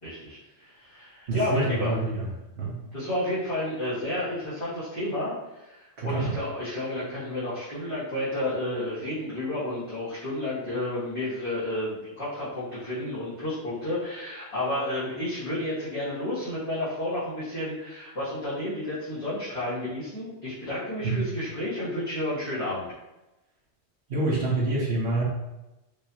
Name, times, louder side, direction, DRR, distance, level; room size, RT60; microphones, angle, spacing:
voice 1, 0.0-1.9 2.9-22.8, left 1 dB, 30° left, -13 dB, 1.5 m, -31 dB
voice 2, 1.3-2.3 2.6-2.8 6.0-6.4 21.0-21.3 24.1-25.2, right 2 dB, 70° right, -5 dB, 1.2 m, -26 dB
4.8 x 2.8 x 2.8 m, 0.99 s
omnidirectional pair, 1.1 m